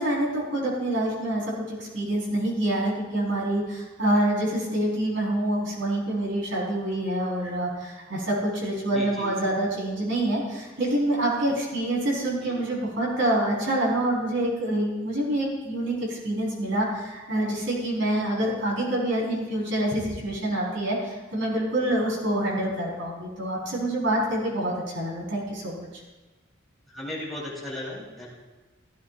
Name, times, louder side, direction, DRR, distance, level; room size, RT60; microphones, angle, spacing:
voice 1, 0.0-25.9, right 1 dB, 65° right, -4 dB, 4.9 m, -26 dB
voice 2, 8.9-9.5 12.4-12.6 26.9-28.3, left 1 dB, ahead, -7 dB, 4.0 m, -36 dB
15.5 x 15.0 x 2.6 m, 1.2 s
head